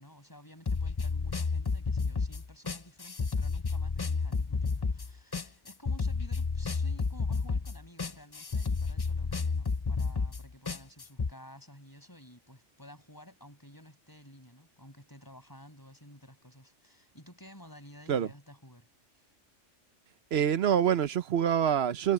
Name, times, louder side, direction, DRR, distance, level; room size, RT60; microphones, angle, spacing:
voice 1, 0.0-18.9 19.1-19.3, equal, 15° left, 6.2 m, -53 dB
sound 1, 0.7-11.3, left 4 dB, 35° left, 0.4 m, -31 dB
voice 2, 20.3-22.1, right 9 dB, 60° right, 1.0 m, -26 dB
omnidirectional pair, 1.3 m